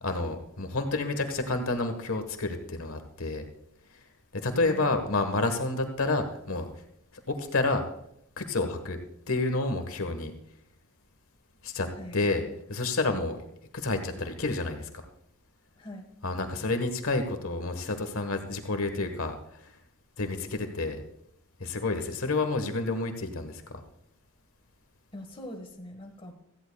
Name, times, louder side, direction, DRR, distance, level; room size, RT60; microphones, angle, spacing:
voice 1, 0.0-3.4 4.3-6.7 7.3-7.8 8.4-9.0 9.3-10.3 11.6-12.4 12.7-13.4 13.7-15.1 16.2-19.7 20.2-21.0 21.6-23.8, left 2 dB, 75° left, 7 dB, 1.3 m, -29 dB
voice 2, 4.6-4.9 11.9-12.3 15.7-16.1 25.1-26.3, left 1 dB, 25° left, 3 dB, 1.4 m, -42 dB
17.0 x 14.0 x 2.3 m, 0.75 s
head